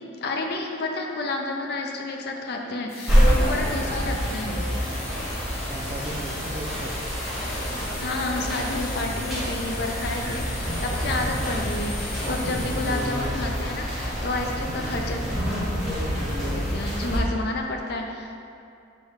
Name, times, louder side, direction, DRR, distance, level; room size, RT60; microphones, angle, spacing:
voice 1, 0.2-4.6 8.0-15.2 16.4-18.4, left 2 dB, 55° left, 2 dB, 0.4 m, -30 dB
sound 1, 2.9-13.4, left 2 dB, 80° left, 0.9 m, -39 dB
sound 2, 3.1-17.2, equal, ahead, 0.8 m, -27 dB
voice 2, 5.7-6.9 11.1-11.2 14.4-14.6, right 1 dB, 30° right, 1 dB, 0.3 m, -37 dB
5.2 x 2.3 x 4.2 m, 2.4 s
head